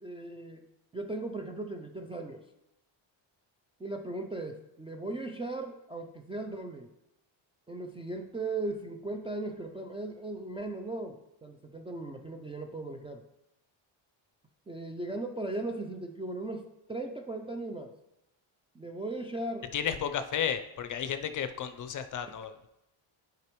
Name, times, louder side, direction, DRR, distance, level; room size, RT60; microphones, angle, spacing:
voice 1, 0.0-2.4 3.8-6.9 7.7-13.2 14.7-18.0 18.7-19.7, right 2 dB, 15° right, 2 dB, 0.3 m, -38 dB
voice 2, 19.7-22.7, left 8 dB, 40° left, 9 dB, 0.5 m, -33 dB
10.5 x 4.9 x 3.1 m, 0.90 s
cardioid pair, 125°, 48 cm